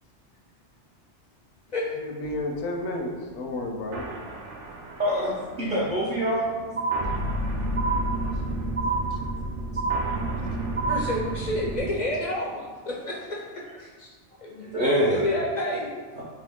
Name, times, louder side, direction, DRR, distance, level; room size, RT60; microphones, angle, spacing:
voice 1, 2.0-4.1 9.1-9.2, left 2 dB, 75° left, 2 dB, 0.9 m, -32 dB
sound 1, 2.2-11.9, right 1 dB, 85° right, 0.9 m, -32 dB
voice 2, 5.0-6.5 14.6-15.2, equal, 50° right, -8 dB, 0.8 m, -25 dB
sound 2, 6.8-7.4 7.8-8.4 8.8-9.4 9.8-10.4 10.8-11.4, right 4 dB, 20° right, 0.4 m, -28 dB
voice 3, 10.9-13.5 13.8-14.1 14.4-14.7 15.1-16.0, left 1 dB, 55° left, -3 dB, 0.5 m, -30 dB
3.8 x 2.8 x 3.5 m, 1.4 s
omnidirectional pair, 1.2 m